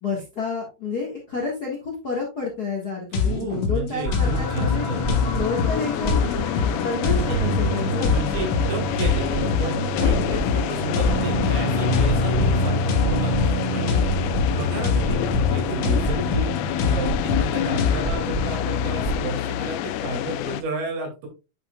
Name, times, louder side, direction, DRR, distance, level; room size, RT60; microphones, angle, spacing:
voice 1, 0.0-4.9 5.3-8.1, left 4 dB, 45° left, 0 dB, 1.3 m, -29 dB
sound 1, 3.1-18.0, left 5 dB, 65° left, 1.3 m, -26 dB
voice 2, 3.1-5.0 8.0-14.0 14.5-15.2 15.5-21.3, right 2 dB, 90° right, 2 dB, 4.2 m, -32 dB
sound 2, 4.0-19.2, right 1 dB, 25° left, 1.7 m, -27 dB
sound 3, 4.2-20.6, left 12 dB, 85° left, 2.3 m, -28 dB
9.6 x 5.7 x 2.3 m, 0.28 s
omnidirectional pair, 4.1 m